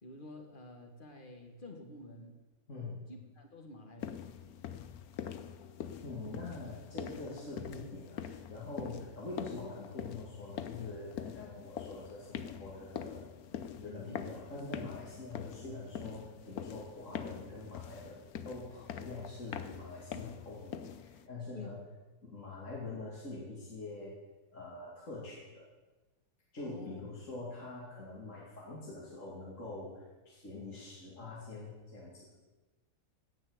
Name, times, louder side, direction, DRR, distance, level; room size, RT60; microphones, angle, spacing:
voice 1, 0.0-2.3 3.1-4.2 11.5-11.6 14.0-14.3 21.5-21.8 26.6-27.1, left 2 dB, 30° left, 3 dB, 2.1 m, -49 dB
voice 2, 2.7-3.1 6.0-13.2 13.8-21.8 22.2-24.1 24.5-25.6 26.5-32.4, left 2 dB, 50° left, -5 dB, 2.9 m, -45 dB
sound 1, 4.0-21.3, left 8 dB, 70° left, 1.2 m, -44 dB
16.5 x 6.2 x 7.9 m, 1.2 s
omnidirectional pair, 1.7 m